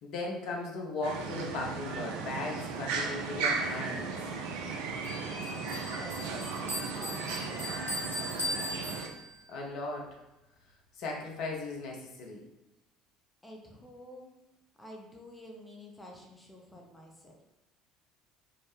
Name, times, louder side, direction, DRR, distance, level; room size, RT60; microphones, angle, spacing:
voice 1, 0.0-4.1 9.5-10.2 11.0-12.5, left 2 dB, 55° left, -1 dB, 0.7 m, -37 dB
sound 1, 1.0-9.1, right 4 dB, 65° right, 0.3 m, -35 dB
Bell, 5.0-9.5, left 1 dB, 85° right, 0.7 m, -39 dB
voice 2, 5.6-7.8 13.4-14.4 14.8-17.4, left 1 dB, 10° left, 0 dB, 0.6 m, -50 dB
3.8 x 2.0 x 3.1 m, 0.96 s
figure-of-eight pair, 60°, 0 cm